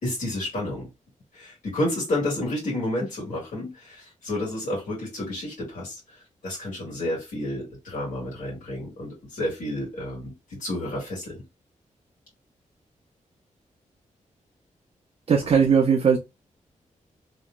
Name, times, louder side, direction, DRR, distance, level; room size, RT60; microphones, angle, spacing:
voice 1, 0.0-0.9 1.3-6.0 6.4-10.3 10.6-11.4, left 1 dB, 85° left, 2.0 m, -30 dB
voice 2, 15.3-16.2, right 6 dB, 45° right, 0.5 m, -19 dB
3.1 x 2.9 x 2.3 m
wide cardioid pair, 160°, 13 cm